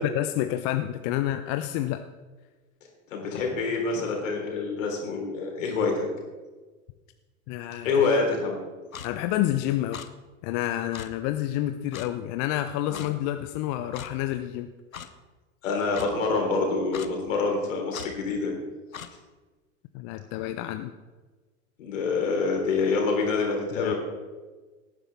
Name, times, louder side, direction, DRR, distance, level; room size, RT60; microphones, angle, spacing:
voice 1, 0.0-2.0 7.5-8.1 9.0-10.1 10.4-14.7 19.9-20.9 23.7-23.9, left 13 dB, 45° left, 8 dB, 0.7 m, -29 dB
voice 2, 3.1-5.9 7.8-8.6 12.9-13.0 15.6-18.5 21.8-24.0, left 4 dB, 70° left, 1 dB, 3.6 m, -26 dB
Clock, 8.9-9.1 9.9-10.1 10.9-11.1 11.9-12.1 12.9-13.1 13.9-14.1 14.9-15.1 15.9-16.1 16.9-17.1 17.9-18.1 18.9-19.1, left 8 dB, 90° left, 0.8 m, -39 dB
18.0 x 9.9 x 3.5 m, 1.3 s
figure-of-eight pair, 85°, 40 cm